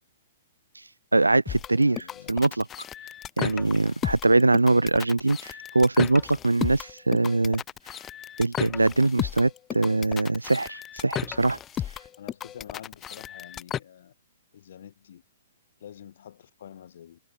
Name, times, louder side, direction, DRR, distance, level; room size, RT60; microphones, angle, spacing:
voice 1, 1.1-2.6 3.4-7.6 8.4-11.6, right 2 dB, 80° right, 0.5 m, -22 dB
sound 1, 1.5-13.8, left 10 dB, 20° left, 0.4 m, -34 dB
voice 2, 1.8-2.4 12.2-14.1 14.5-15.2 15.8-17.2, left 10 dB, 55° left, 4.7 m, -47 dB
figure-of-eight pair, 115°, 0 cm